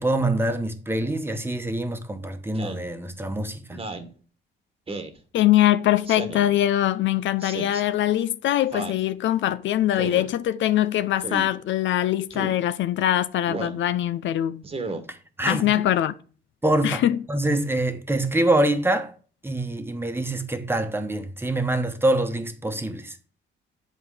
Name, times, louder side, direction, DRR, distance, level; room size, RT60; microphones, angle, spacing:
voice 1, 0.0-3.8 15.1-15.7 16.6-17.0 17.3-19.1 19.4-23.2, right 1 dB, 10° right, 1.2 m, -25 dB
Speech synthesizer, 2.5-2.9 3.7-4.1 4.9-5.2 6.1-6.5 7.4-7.8 8.7-9.0 10.0-10.3 11.2-11.5 12.3-12.6 13.5-13.8 14.6-15.0, right 3 dB, 30° right, 1.3 m, -33 dB
voice 2, 5.3-14.6 15.4-16.1 16.8-17.2, left 12 dB, 70° left, 0.5 m, -22 dB
8.1 x 4.5 x 4.8 m
cardioid pair, 90°, 20 cm